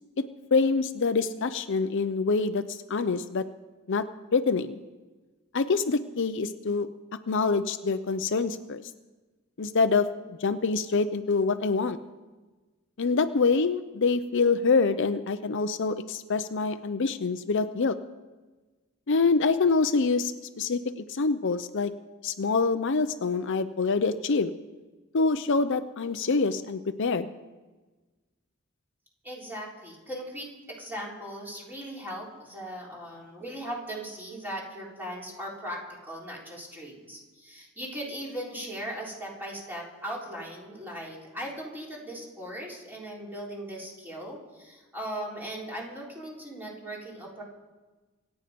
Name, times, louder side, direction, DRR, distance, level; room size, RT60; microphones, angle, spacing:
voice 1, 0.5-3.5 3.9-4.0 4.3-4.8 5.5-6.9 7.3-8.8 9.6-12.0 13.0-18.0 19.1-21.9 22.2-24.5 25.1-27.3, left 4 dB, 60° left, 10 dB, 0.6 m, -25 dB
voice 2, 29.2-47.4, equal, 10° right, -3 dB, 3.9 m, -38 dB
26.5 x 9.1 x 5.2 m, 1.2 s
head